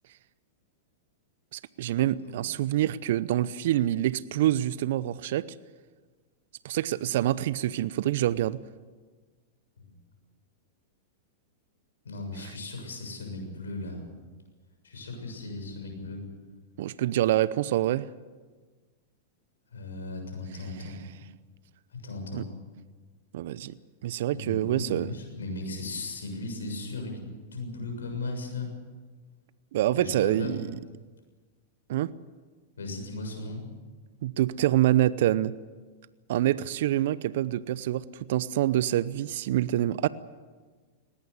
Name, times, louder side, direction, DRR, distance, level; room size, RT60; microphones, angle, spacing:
voice 1, 1.5-5.5 6.6-8.6 16.8-18.1 22.3-22.4 23.3-23.7 24.0-25.1 29.7-30.7 31.9-32.1 34.2-35.5 36.3-40.1, right 13 dB, 65° right, 18 dB, 0.7 m, -26 dB
voice 2, 12.0-14.0 14.8-16.2 19.7-21.0 21.9-22.5 24.3-27.2 27.5-28.7 29.9-30.6 32.8-33.6, left 2 dB, 85° left, 4 dB, 6.9 m, -37 dB
20.0 x 17.5 x 9.6 m, 1.4 s
hypercardioid pair, 105°, 0 cm